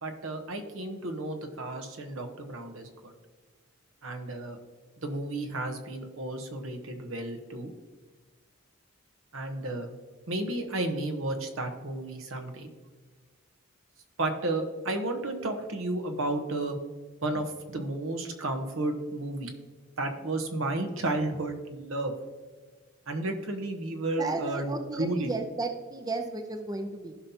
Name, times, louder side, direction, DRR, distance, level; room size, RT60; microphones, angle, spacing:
voice 1, 0.0-3.1 4.0-4.6 5.0-7.7 9.3-9.9 10.3-12.7 14.2-16.8 17.2-19.5 20.0-22.1 23.1-24.7 25.0-25.3, right 2 dB, 80° right, 5 dB, 1.1 m, -32 dB
voice 2, 24.2-27.2, right 3 dB, 20° right, 6 dB, 0.6 m, -34 dB
15.0 x 5.6 x 2.9 m, 1.4 s
head